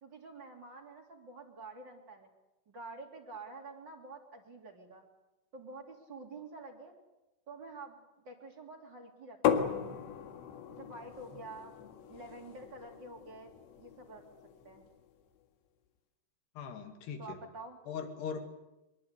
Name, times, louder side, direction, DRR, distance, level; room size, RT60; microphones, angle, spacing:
voice 1, 0.0-2.3 2.7-5.1 5.5-7.0 7.5-8.0 8.2-9.8 10.7-11.7 12.1-14.2 14.6-14.9 17.2-17.8, right 3 dB, 30° right, 3 dB, 3.1 m, -48 dB
sound 1, 9.4-15.1, left 8 dB, 85° left, 4.1 m, -37 dB
voice 2, 16.6-17.4 17.9-18.4, left 6 dB, 70° left, 6 dB, 4.5 m, -40 dB
23.5 x 23.0 x 8.2 m, 0.98 s
omnidirectional pair, 5.0 m